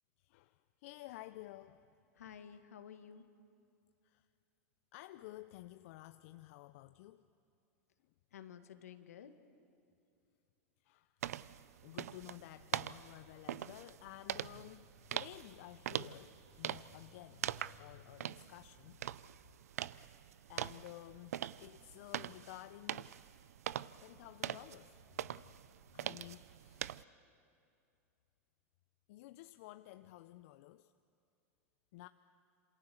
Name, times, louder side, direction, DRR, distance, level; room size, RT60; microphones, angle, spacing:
voice 1, 0.2-1.9 4.0-4.3 4.9-7.3 10.8-11.2 11.8-19.2 20.5-23.1 24.0-25.3 25.9-26.9 27.2-27.3 29.1-30.9 31.9-32.1, left 16 dB, 60° left, 11 dB, 0.7 m, -53 dB
voice 2, 2.2-3.3 8.3-9.4, left 8 dB, 80° left, 8 dB, 1.8 m, -52 dB
sound 1, 11.2-27.0, right 11 dB, 80° right, 0.5 m, -43 dB
27.5 x 27.5 x 7.0 m, 2.5 s
hypercardioid pair, 100°, 8 cm